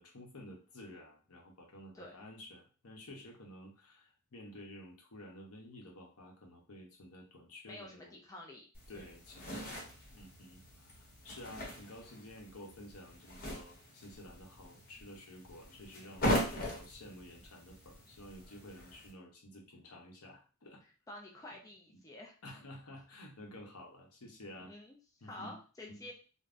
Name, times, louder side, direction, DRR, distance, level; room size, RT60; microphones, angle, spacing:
voice 1, 0.0-8.1 8.9-20.8 22.4-24.7 25.2-25.6 25.9-26.1, left 1 dB, 75° left, 1 dB, 0.8 m, -52 dB
voice 2, 7.7-8.6 8.9-9.1 21.1-22.4 24.6-25.0 25.2-26.1, left 1 dB, 15° left, 0 dB, 0.3 m, -49 dB
sound 1, 8.7-19.1, equal, 45° left, 0.9 m, -40 dB
3.4 x 2.1 x 2.5 m, 0.36 s
head